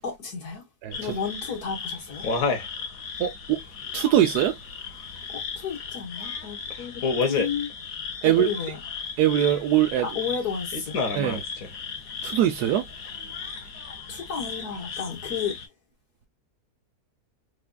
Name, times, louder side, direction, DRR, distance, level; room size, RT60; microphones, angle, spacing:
voice 1, 0.0-0.6 0.9-2.3 5.3-7.7 8.2-8.8 10.0-11.0 13.9-15.6, left 6 dB, 80° left, 1.8 m, -32 dB
voice 2, 0.8-1.1 3.2-3.6 3.9-4.6 8.2-8.5 9.2-10.1 11.1-11.4 12.2-12.8, right 11 dB, 90° right, 1.1 m, -22 dB
sound 1, 0.9-15.6, left 5 dB, 65° left, 1.4 m, -33 dB
4.8 x 2.5 x 2.2 m
omnidirectional pair, 1.6 m